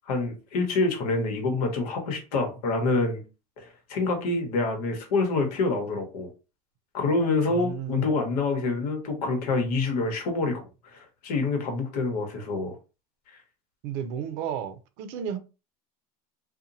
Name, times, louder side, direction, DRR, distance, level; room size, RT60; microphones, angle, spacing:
voice 1, 0.1-3.2 3.6-6.3 6.9-12.8, left 3 dB, 75° left, 1.0 m, -27 dB
voice 2, 7.5-8.1 13.8-15.4, right 8 dB, 60° right, 0.5 m, -33 dB
2.8 x 2.2 x 2.6 m
supercardioid pair, 110°, 20 cm